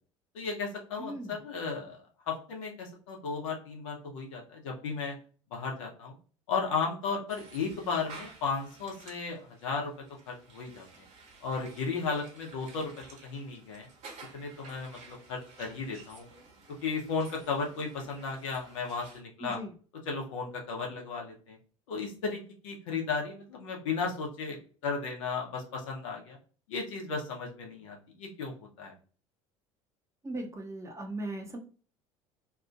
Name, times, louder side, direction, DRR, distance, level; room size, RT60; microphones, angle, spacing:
voice 1, 0.3-2.0 2.3-5.2 5.5-6.1 6.5-9.9 10.3-11.1 11.4-13.9 14.3-16.3 16.8-19.6 20.1-21.6 21.9-26.4 26.7-28.9, left 4 dB, 70° left, 0 dB, 0.9 m, -35 dB
voice 2, 1.0-1.4 19.4-19.7 30.2-31.6, right 1 dB, 15° right, 2 dB, 0.8 m, -38 dB
sound 1, 7.3-19.2, right 4 dB, 45° right, 1.1 m, -53 dB
2.9 x 2.5 x 2.4 m, 0.40 s
figure-of-eight pair, 65°, 17 cm